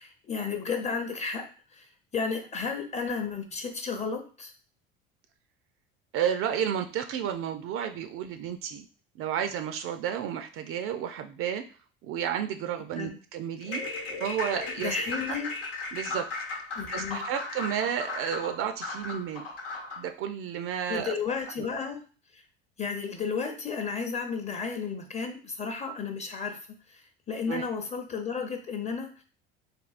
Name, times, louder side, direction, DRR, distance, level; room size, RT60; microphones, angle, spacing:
voice 1, 0.0-1.5 1.7-1.9 2.1-4.5 13.0-13.2 14.8-15.5 16.7-17.3 20.9-22.0 22.3-22.4 22.8-26.6 26.9-27.0 27.3-29.2, left 5 dB, 25° left, 4 dB, 0.7 m, -33 dB
voice 2, 6.1-8.9 9.2-11.6 12.0-13.8 14.2-15.0 15.3-15.4 15.9-16.3 16.9-19.5 20.0-21.1 27.5-27.7, right 9 dB, 50° right, 7 dB, 0.4 m, -31 dB
sound 1, 13.6-20.1, left 3 dB, 85° left, 1.0 m, -36 dB
3.4 x 2.2 x 2.4 m, 0.38 s
hypercardioid pair, 75°, 29 cm